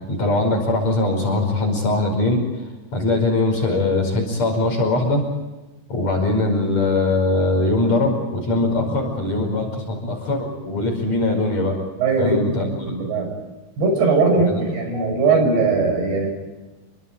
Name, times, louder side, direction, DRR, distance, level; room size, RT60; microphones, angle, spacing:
voice 1, 0.1-2.6 2.9-5.3 5.9-11.8 12.2-12.9 14.5-14.6 14.9-15.1, left 2 dB, 35° left, 2 dB, 6.1 m, -21 dB
voice 2, 12.0-13.3 13.8-16.3, right 4 dB, 55° right, 4 dB, 7.8 m, -20 dB
29.5 x 24.0 x 5.0 m, 1.1 s
omnidirectional pair, 5.5 m